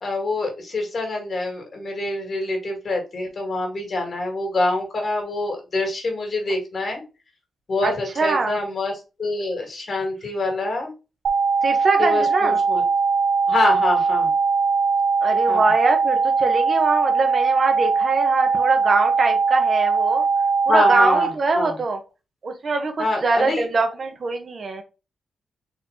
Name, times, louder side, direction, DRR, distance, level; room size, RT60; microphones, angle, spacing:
voice 1, 0.0-7.0 7.7-8.9 9.2-10.9 12.0-12.8 13.5-14.3 15.5-15.6 20.7-21.3 21.5-21.7 23.0-23.6, left 2 dB, 50° left, 2 dB, 2.1 m, -25 dB
voice 2, 7.8-8.6 11.6-12.6 15.2-20.3 20.7-22.0 22.4-24.8, right 3 dB, 50° right, 5 dB, 1.2 m, -23 dB
sound 1, 11.2-21.3, right 5 dB, 80° right, 0.8 m, -20 dB
4.3 x 3.0 x 3.9 m, 0.29 s
cardioid pair, 70°, 0 cm